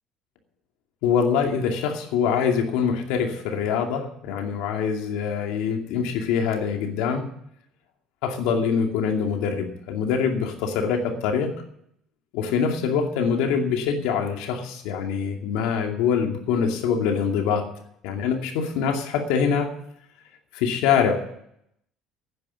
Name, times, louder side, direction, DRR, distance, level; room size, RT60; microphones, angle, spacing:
voice 1, 1.0-7.2 8.2-11.5 12.3-17.7 18.0-19.7 20.5-21.4, left 6 dB, 85° left, 3 dB, 2.4 m, -24 dB
10.5 x 9.9 x 8.4 m, 0.73 s
cardioid pair, 125°, 0 cm